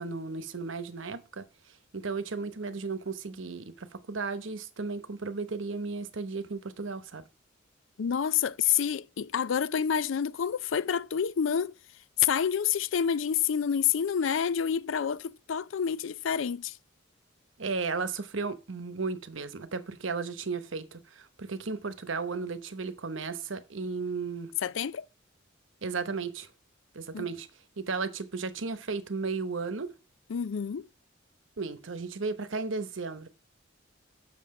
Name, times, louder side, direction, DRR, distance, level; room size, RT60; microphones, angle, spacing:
voice 1, 0.0-1.4 1.9-7.2 17.6-24.5 25.8-26.5 26.9-27.5 27.8-29.9 31.6-33.3, right 4 dB, 75° right, 1.0 m, -34 dB
voice 2, 8.0-11.7 12.2-16.8 24.6-25.0 27.1-27.3 30.3-30.8, left 8 dB, 75° left, 0.4 m, -28 dB
7.7 x 6.5 x 4.8 m
head